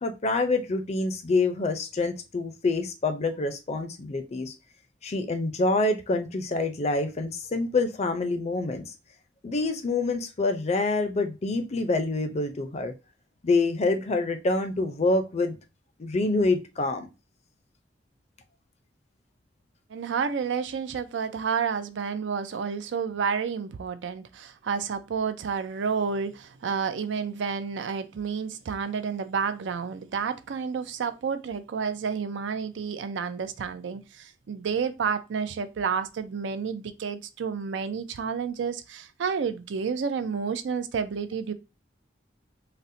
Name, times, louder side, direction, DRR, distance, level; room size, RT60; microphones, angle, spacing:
voice 1, 0.0-4.5 5.0-8.9 9.4-12.9 13.4-15.6 16.0-17.1, left 3 dB, 35° left, 0.5 m, -26 dB
voice 2, 19.9-41.5, right 6 dB, 80° right, 0.4 m, -30 dB
4.1 x 2.1 x 2.6 m
head